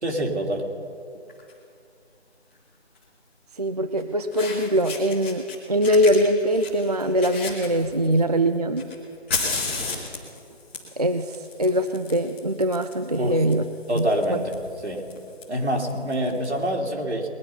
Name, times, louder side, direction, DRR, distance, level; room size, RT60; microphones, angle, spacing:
voice 1, 0.0-0.7 13.2-13.4 13.9-14.5 14.8-15.0 15.5-17.3, equal, 80° right, 1 dB, 2.7 m, -25 dB
Fire, 1.3-1.5 2.9-3.0 4.0-4.1 4.3-5.5 5.8-8.2 8.8-16.4, left 4 dB, 10° left, 1.2 m, -34 dB
voice 2, 3.6-8.8 11.0-13.6 13.9-14.1, equal, 35° right, 9 dB, 0.4 m, -22 dB
20.0 x 10.5 x 5.7 m, 2.4 s
figure-of-eight pair, 160°, 33 cm